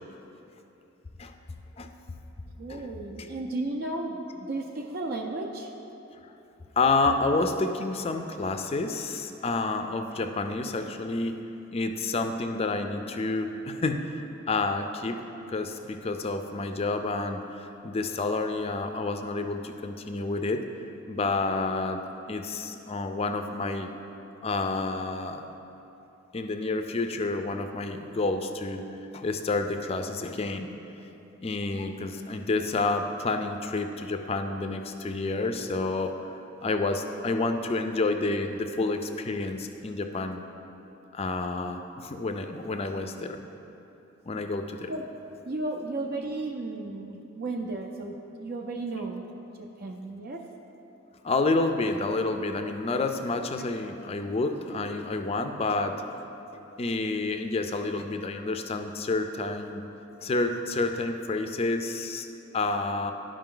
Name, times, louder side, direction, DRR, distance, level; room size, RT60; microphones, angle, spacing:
voice 1, 2.6-5.7 44.9-45.1 45.4-49.2 49.6-50.5, right 2 dB, 50° right, 1 dB, 0.5 m, -34 dB
voice 2, 6.8-11.4 11.7-14.1 14.5-15.3 15.5-20.6 21.1-22.0 22.3-23.9 24.4-25.4 26.3-28.8 29.1-30.7 31.4-36.1 36.6-40.4 41.1-43.4 44.3-44.9 51.2-56.0 56.8-59.8 60.2-62.3 62.5-63.1, left 3 dB, 30° left, 6 dB, 0.4 m, -29 dB
11.5 x 5.1 x 3.8 m, 2.9 s
head